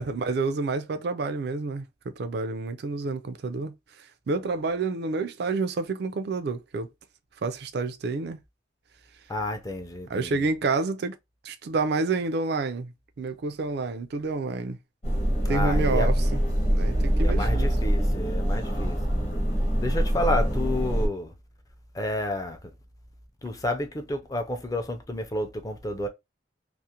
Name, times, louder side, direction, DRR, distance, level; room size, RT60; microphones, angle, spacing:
voice 1, 0.0-1.8 2.2-3.7 4.3-6.9 7.4-8.4 10.1-11.1 11.4-12.9 13.2-14.8 15.5-16.4 16.7-17.7, right 3 dB, 60° right, 0.4 m, -29 dB
voice 2, 9.3-10.5 15.4-16.1 17.2-19.0 19.8-21.3 21.9-22.7 23.4-26.1, left 1 dB, 20° left, 0.5 m, -30 dB
sound 1, 15.0-21.1, equal, 40° left, 0.9 m, -24 dB
2.4 x 2.1 x 2.8 m
head